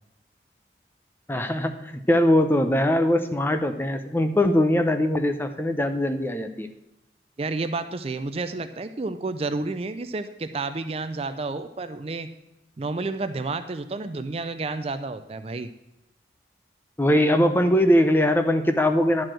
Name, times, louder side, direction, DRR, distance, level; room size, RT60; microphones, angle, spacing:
voice 1, 1.3-6.7 17.0-19.3, left 1 dB, 10° left, 7 dB, 0.6 m, -21 dB
voice 2, 7.4-12.3 12.8-15.7, right 3 dB, 35° right, 9 dB, 0.4 m, -30 dB
10.5 x 4.8 x 7.5 m, 0.90 s
head